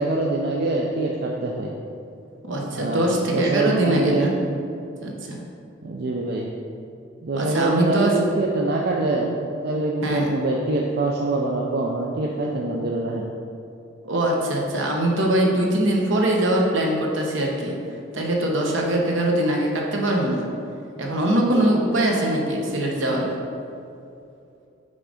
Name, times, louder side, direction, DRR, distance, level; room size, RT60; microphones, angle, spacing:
voice 1, 0.0-1.7 2.7-4.3 5.8-6.5 7.2-9.4 9.6-13.3, right 2 dB, 50° right, -1 dB, 0.4 m, -24 dB
voice 2, 2.4-4.3 5.0-5.4 7.4-8.2 10.0-10.3 14.0-17.8 18.1-20.5 21.0-23.3, right 1 dB, 70° right, 0 dB, 1.0 m, -22 dB
5.6 x 3.8 x 4.9 m, 2.6 s
head